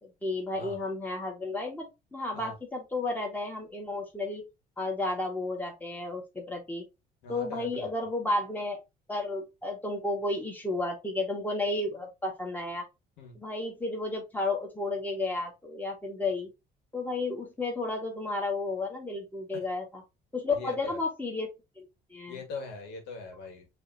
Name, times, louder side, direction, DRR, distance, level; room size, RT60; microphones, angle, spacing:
voice 1, 0.0-4.5 4.8-6.8 7.3-8.8 9.1-12.8 13.3-16.5 16.9-20.0 20.3-21.5 21.8-22.4, left 2 dB, 10° left, 0 dB, 2.0 m, -32 dB
voice 2, 7.2-7.9 13.2-13.4 19.5-19.7 20.5-21.0 22.3-23.7, left 3 dB, 85° left, 3 dB, 2.0 m, -41 dB
5.3 x 3.4 x 2.9 m, 0.23 s
cardioid pair, 110°, 17 cm